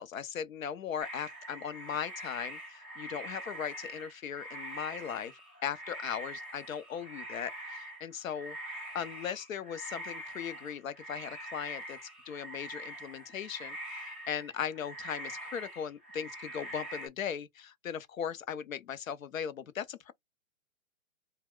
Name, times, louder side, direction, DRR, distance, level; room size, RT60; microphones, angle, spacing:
voice 1, 0.0-5.3 5.6-12.0 12.3-20.1, left 8 dB, 70° left, 0.7 m, -38 dB
sound 1, 1.0-17.1, right 1 dB, 10° right, 0.3 m, -44 dB
2.3 x 2.2 x 3.5 m
figure-of-eight pair, 125°, 42 cm